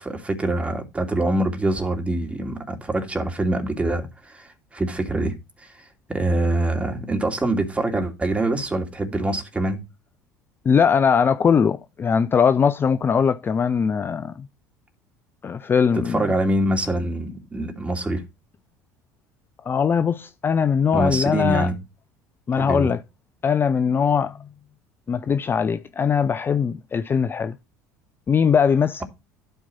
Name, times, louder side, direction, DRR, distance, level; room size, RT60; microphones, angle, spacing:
voice 1, 0.0-9.8 15.9-18.2 20.9-21.7 22.6-22.9, right 1 dB, 15° right, 2.9 m, -25 dB
voice 2, 10.7-14.5 15.4-16.2 19.7-21.7 22.5-23.0 23.4-24.5 25.1-27.6 28.3-29.0, left 6 dB, 25° left, 0.5 m, -20 dB
12.5 x 4.5 x 4.2 m
figure-of-eight pair, 65°, 9 cm